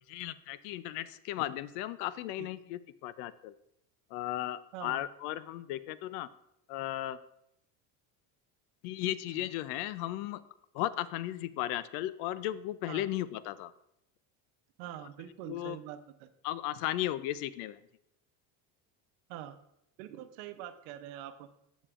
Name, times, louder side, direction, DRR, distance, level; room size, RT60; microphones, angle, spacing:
voice 1, 0.1-3.5 4.1-6.3 6.7-7.2 8.8-10.4 10.7-13.7 15.5-15.8 16.4-17.8, left 14 dB, 80° left, 17 dB, 0.5 m, -35 dB
voice 2, 14.8-16.3 19.3-19.6 20.0-21.5, right 11 dB, 80° right, 10 dB, 0.8 m, -44 dB
8.8 x 7.2 x 2.4 m, 0.78 s
supercardioid pair, 115°, 45 cm